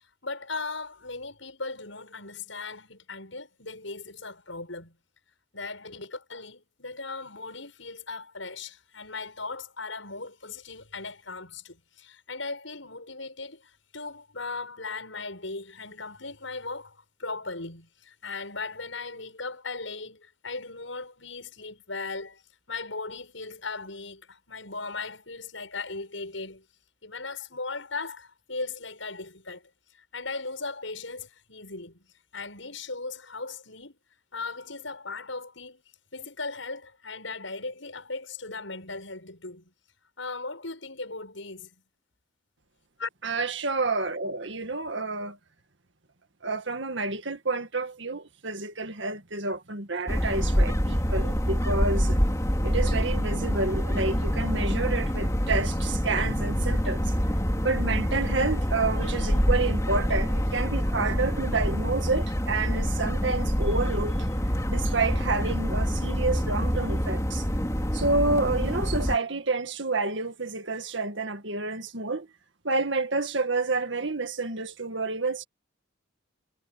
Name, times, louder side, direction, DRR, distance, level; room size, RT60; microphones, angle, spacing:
voice 1, 0.2-5.0 5.5-22.4 22.7-26.6 27.0-29.7 30.1-32.1 32.3-34.0 34.3-35.8 36.1-39.7 40.2-41.7 43.0-43.1, left 3 dB, 75° left, 7.4 m, -38 dB
voice 2, 43.2-45.4 46.4-52.2 52.6-57.1 57.6-64.2 64.7-67.4 67.9-72.3 72.6-75.4, right 3 dB, 65° right, 2.0 m, -29 dB
sound 1, 50.1-69.2, equal, 15° left, 3.4 m, -26 dB
head